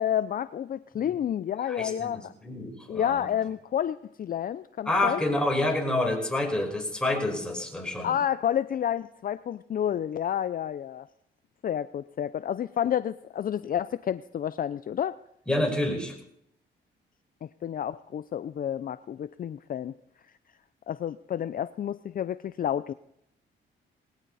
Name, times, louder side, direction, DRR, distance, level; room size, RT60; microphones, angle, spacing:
voice 1, 0.0-2.3 2.9-5.2 8.0-11.1 11.6-15.2 17.4-19.9 20.9-22.9, left 9 dB, 45° left, 14 dB, 0.5 m, -30 dB
voice 2, 1.7-3.3 4.9-8.1 15.5-16.1, left 1 dB, 5° left, 0 dB, 5.4 m, -28 dB
19.5 x 17.0 x 4.2 m, 0.76 s
cardioid pair, 90°, 20 cm